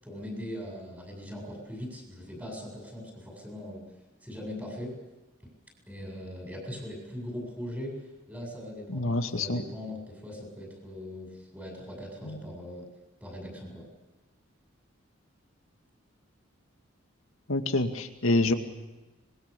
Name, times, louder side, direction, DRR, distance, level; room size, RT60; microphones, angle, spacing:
voice 1, 0.0-3.8 4.2-4.9 5.9-8.0 8.3-9.1 9.3-12.9 13.2-13.8, left 1 dB, 10° right, 0 dB, 7.4 m, -40 dB
voice 2, 8.9-9.6 12.2-12.4 17.5-18.5, left 2 dB, 85° left, 6 dB, 2.2 m, -27 dB
26.0 x 21.5 x 6.9 m, 1.1 s
head